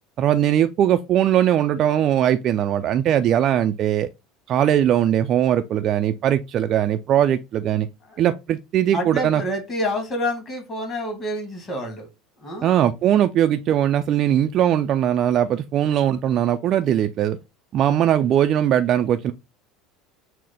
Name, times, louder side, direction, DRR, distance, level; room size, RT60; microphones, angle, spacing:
voice 1, 0.2-4.1 4.5-7.9 8.2-9.4 12.6-17.4 17.7-19.3, right 10 dB, 45° right, 0.3 m, -20 dB
voice 2, 8.9-12.1 12.4-12.7, left 1 dB, 30° left, 2.0 m, -28 dB
6.1 x 2.1 x 3.8 m
figure-of-eight pair, 70°, 0 cm